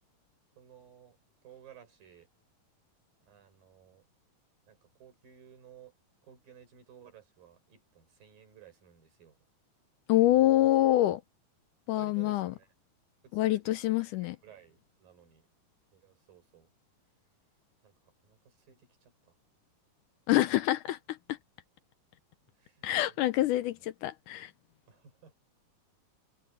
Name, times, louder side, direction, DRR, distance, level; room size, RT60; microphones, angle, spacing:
voice 1, 0.6-1.2 1.4-2.3 3.3-4.0 4.7-5.9 6.2-9.4 11.9-12.7 13.2-13.9 14.2-15.5 15.9-16.7 17.8-17.9 18.2-19.3 22.6-23.3 24.9-25.3, right 9 dB, 85° right, 6.7 m, -56 dB
voice 2, 10.1-11.2 11.9-12.5 13.3-14.4 20.3-21.4 22.8-24.5, left 14 dB, 80° left, 2.1 m, -26 dB
omnidirectional pair, 3.9 m